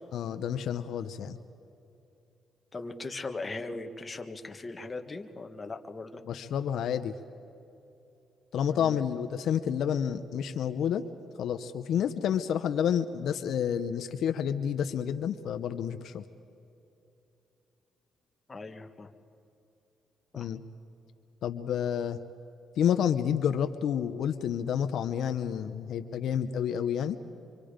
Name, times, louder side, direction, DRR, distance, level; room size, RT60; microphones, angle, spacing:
voice 1, 0.1-1.4 6.2-7.1 8.5-11.0 11.4-16.2 20.4-20.6 21.4-22.2 22.8-27.2, left 8 dB, 70° left, 8 dB, 0.8 m, -29 dB
voice 2, 2.7-6.2 8.7-9.0 18.5-19.1 20.3-20.5, left 3 dB, 25° left, 6 dB, 1.5 m, -39 dB
26.0 x 25.0 x 5.1 m, 2.9 s
cardioid pair, 90°, 0 cm